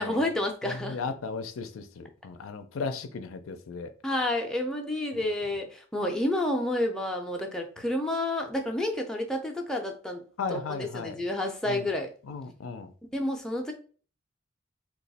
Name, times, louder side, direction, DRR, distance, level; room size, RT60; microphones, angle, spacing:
voice 1, 0.0-1.0 4.0-10.2 10.5-12.1 13.1-13.7, left 1 dB, 5° left, 0.4 m, -30 dB
voice 2, 0.7-3.9 10.4-11.2 11.7-11.9 12.3-12.9, left 4 dB, 90° left, 0.4 m, -36 dB
3.0 x 2.3 x 4.0 m
head